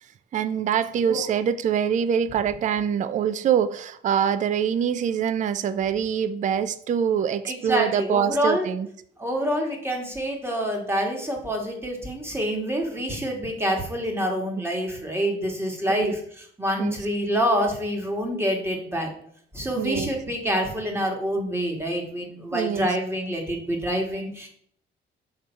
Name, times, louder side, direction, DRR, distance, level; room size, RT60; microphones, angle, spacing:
voice 1, 0.3-8.9 15.9-16.1 16.8-17.0 19.7-20.1 22.5-22.9, right 8 dB, 40° right, 13 dB, 0.4 m, -24 dB
voice 2, 7.4-8.7 9.2-19.1 19.5-24.5, equal, 10° right, 1 dB, 1.7 m, -27 dB
6.3 x 3.5 x 4.4 m, 0.64 s
cardioid pair, 90°, 20 cm